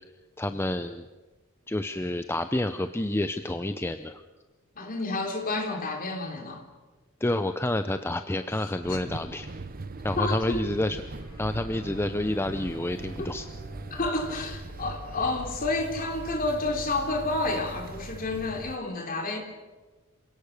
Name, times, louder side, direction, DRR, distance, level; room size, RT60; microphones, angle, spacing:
voice 1, 0.4-1.1 1.7-4.2 7.2-9.5 10.0-11.0 11.4-13.5, left 1 dB, 10° left, 9 dB, 0.6 m, -29 dB
voice 2, 4.8-6.7 8.9-9.0 10.2-10.7 13.2-13.4 13.9-19.4, left 2 dB, 40° left, 3 dB, 3.4 m, -30 dB
sound 1, 8.8-18.8, right 2 dB, 40° right, 0.8 m, -40 dB
Bowed string instrument, 11.1-15.5, equal, 75° left, 5.8 m, -51 dB
27.0 x 17.5 x 6.7 m, 1.2 s
head